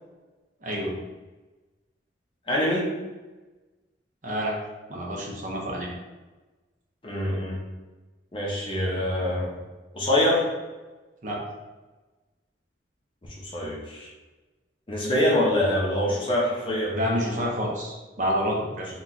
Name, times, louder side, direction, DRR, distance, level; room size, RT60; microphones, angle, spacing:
voice 1, 0.6-0.9 4.2-4.5 4.9-5.9 11.2-11.4 16.9-18.9, equal, 40° right, -2 dB, 0.7 m, -28 dB
voice 2, 2.5-2.9 7.0-7.6 8.3-9.5 9.9-10.5 13.4-14.1 14.9-17.0, left 1 dB, 25° left, -4 dB, 0.6 m, -24 dB
2.9 x 2.3 x 3.8 m, 1.2 s
head